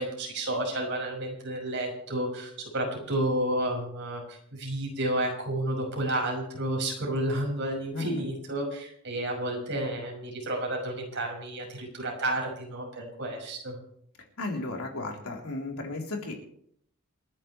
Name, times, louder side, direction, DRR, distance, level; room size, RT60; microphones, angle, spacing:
voice 1, 0.0-13.8, right 1 dB, 55° right, 0 dB, 6.0 m, -31 dB
voice 2, 7.9-8.2 14.4-16.4, left 2 dB, 75° left, 0 dB, 3.8 m, -34 dB
28.5 x 10.5 x 3.3 m, 0.67 s
head